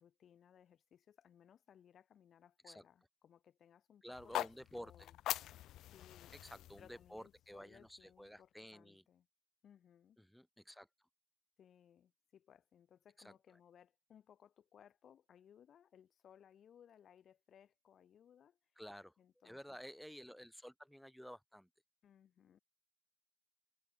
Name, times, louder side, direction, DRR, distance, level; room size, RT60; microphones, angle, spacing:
voice 1, 0.0-4.4 4.8-5.1 5.9-9.2 9.6-10.2 11.6-18.6 19.2-19.6 22.0-22.6, left 9 dB, 60° left, 6.0 m, -64 dB
voice 2, 4.0-5.1 6.4-9.0 10.2-11.1 13.2-13.3 18.8-19.1 19.4-21.7, equal, ahead, 1.8 m, -52 dB
sound 1, 4.1-8.3, left 13 dB, 85° left, 0.5 m, -44 dB
cardioid pair, 90°, 0 cm